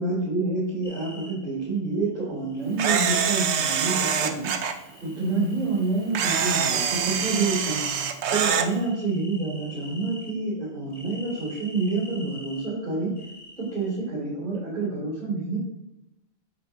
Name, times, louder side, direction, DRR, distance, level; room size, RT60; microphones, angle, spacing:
voice 1, 0.0-4.7 5.0-13.1 13.6-15.6, right 3 dB, 45° right, -10 dB, 3.6 m, -28 dB
sound 1, 0.8-1.3 2.5-4.1 4.6-6.6 6.9-10.4 10.9-12.7 13.1-14.0, left 1 dB, 40° left, 1.8 m, -47 dB
Camera, 2.8-4.7 6.1-8.7, right 7 dB, 75° right, 1.0 m, -25 dB
8.4 x 7.7 x 2.9 m, 0.90 s
omnidirectional pair, 1.2 m